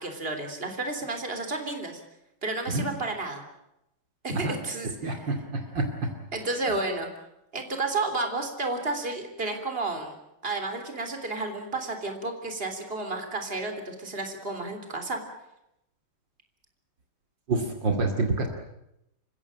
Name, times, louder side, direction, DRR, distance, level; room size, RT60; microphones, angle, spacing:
voice 1, 0.0-2.0 2.4-3.4 4.2-5.3 6.3-7.1 7.5-10.1 10.4-15.2, right 2 dB, 25° right, 5 dB, 3.6 m, -31 dB
voice 2, 5.0-5.9 17.5-18.5, right 3 dB, 60° right, 3 dB, 3.1 m, -27 dB
28.5 x 15.5 x 8.9 m, 0.86 s
omnidirectional pair, 2.3 m